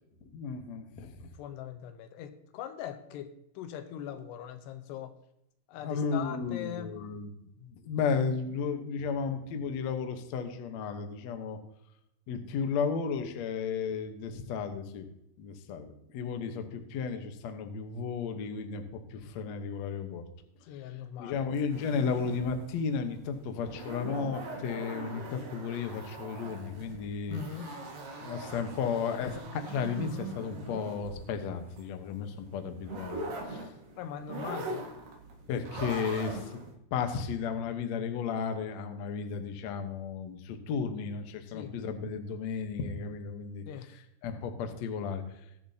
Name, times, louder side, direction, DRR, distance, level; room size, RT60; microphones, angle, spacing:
voice 1, 0.2-1.3 5.8-11.6 12.3-15.1 15.4-20.2 20.8-27.4 28.2-33.2 33.5-33.7 35.5-36.6 36.9-43.6 44.2-45.4, left 6 dB, 75° left, 6 dB, 1.6 m, -34 dB
voice 2, 1.2-5.1 5.7-6.9 20.7-21.5 27.3-27.8 34.0-34.8 41.5-41.8 43.7-43.9, left 9 dB, 90° left, 9 dB, 3.0 m, -41 dB
sound 1, 21.5-36.7, right 2 dB, 60° right, 3.3 m, -42 dB
21.5 x 7.2 x 2.8 m, 0.81 s
omnidirectional pair, 4.7 m